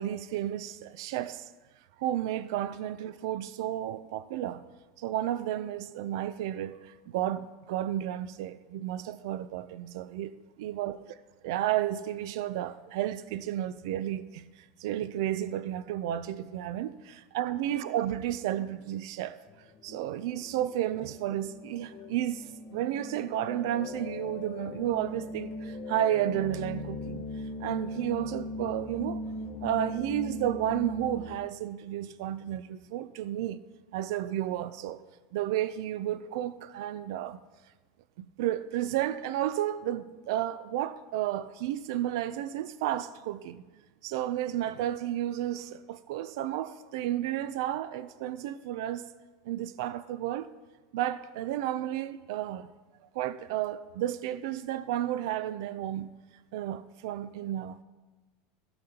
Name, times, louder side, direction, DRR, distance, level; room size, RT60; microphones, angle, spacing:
voice 1, 0.0-1.5 2.0-4.6 5.0-11.2 11.4-14.5 14.8-19.4 19.8-27.3 27.6-29.2 29.6-33.6 33.9-35.0 35.3-37.4 38.2-43.7 44.0-49.1 49.4-50.5 50.9-52.7 53.1-56.1 56.5-57.8, right 12 dB, 70° right, 0.4 m, -32 dB
sound 1, 19.5-31.4, left 2 dB, 30° left, 0.6 m, -39 dB
16.0 x 6.8 x 2.9 m
supercardioid pair, 150°, 2 cm